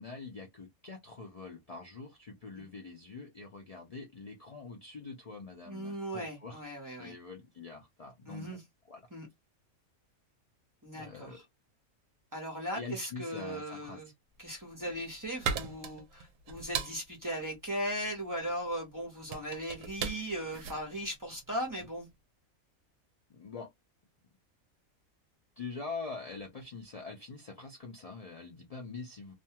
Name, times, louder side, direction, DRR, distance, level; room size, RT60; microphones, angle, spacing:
voice 1, 0.0-6.6 7.0-8.6 8.9-9.0 10.9-11.4 12.7-14.0 23.3-23.7 25.6-29.3, left 4 dB, 65° left, 0.3 m, -44 dB
voice 2, 5.7-7.1 8.3-8.6 9.1-9.3 10.8-11.4 12.3-14.1 14.4-22.1, equal, 15° right, 0.8 m, -38 dB
sound 1, 14.6-22.0, right 6 dB, 70° right, 0.9 m, -39 dB
2.6 x 2.3 x 2.8 m
omnidirectional pair, 1.5 m